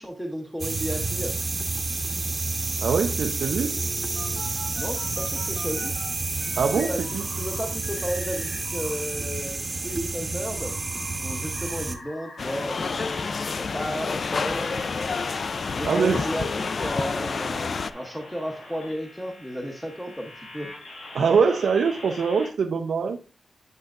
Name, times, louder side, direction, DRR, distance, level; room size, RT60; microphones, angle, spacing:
voice 1, 0.0-1.3 4.7-5.9 6.8-10.8 11.2-13.2 13.6-14.9 15.8-20.7, equal, 5° left, 1 dB, 0.8 m, -33 dB
sound 1, 0.6-11.9, right 3 dB, 25° right, 0.9 m, -29 dB
voice 2, 2.8-3.8 6.6-7.2 15.9-16.3 21.1-23.2, right 5 dB, 85° right, 4 dB, 0.5 m, -23 dB
sound 2, 3.4-6.1 6.4-9.0 9.3-22.5, left 1 dB, 85° left, 3.3 m, -43 dB
sound 3, 12.4-17.9, left 4 dB, 45° left, 0.3 m, -29 dB
8.1 x 7.5 x 2.4 m, 0.35 s
wide cardioid pair, 175°, 0 cm